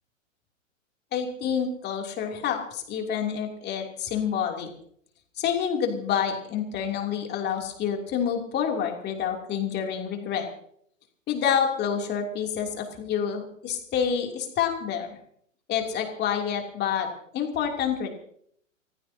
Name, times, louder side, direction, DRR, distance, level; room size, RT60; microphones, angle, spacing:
voice 1, 1.1-4.7 5.4-10.5 11.3-15.2 15.7-18.1, left 8 dB, 25° left, 2 dB, 3.0 m, -28 dB
28.5 x 15.5 x 2.8 m, 0.65 s
hypercardioid pair, 120°, 39 cm